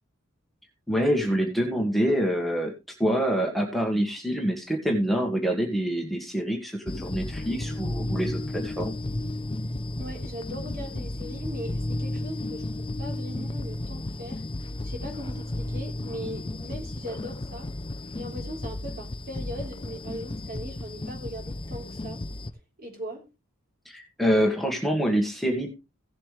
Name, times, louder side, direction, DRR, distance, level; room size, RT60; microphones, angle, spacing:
voice 1, 0.9-2.7 3.0-9.0 23.8-25.7, equal, ahead, 1.6 m, -26 dB
sound 1, 6.9-22.5, left 1 dB, 25° left, 0.6 m, -33 dB
voice 2, 10.0-17.7 18.1-22.2 22.8-23.3, equal, 45° right, 3.9 m, -39 dB
16.5 x 7.5 x 3.3 m
head